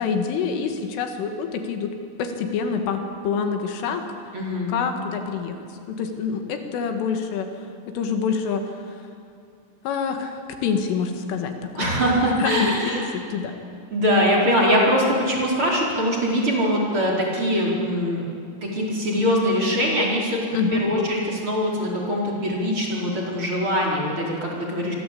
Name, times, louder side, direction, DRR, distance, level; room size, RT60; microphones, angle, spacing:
voice 1, 0.0-4.0 4.7-5.6 5.9-9.0 9.8-12.0 12.4-13.5 20.5-20.8, left 6 dB, 80° left, 5 dB, 4.5 m, -26 dB
voice 2, 4.3-4.7 11.8-13.1 13.9-18.2 18.6-20.5 20.7-24.9, equal, 25° right, -3 dB, 5.0 m, -22 dB
27.0 x 24.0 x 8.6 m, 2.4 s
omnidirectional pair, 5.6 m